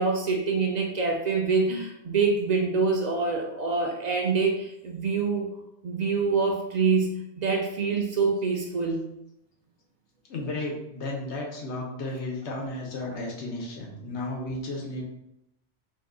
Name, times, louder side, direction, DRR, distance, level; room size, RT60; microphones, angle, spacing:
voice 1, 0.0-5.5 5.8-9.0, right 4 dB, 60° right, 1 dB, 0.4 m, -25 dB
voice 2, 10.3-15.0, left 2 dB, 85° left, -1 dB, 1.0 m, -33 dB
2.7 x 2.2 x 3.6 m, 0.82 s
omnidirectional pair, 1.1 m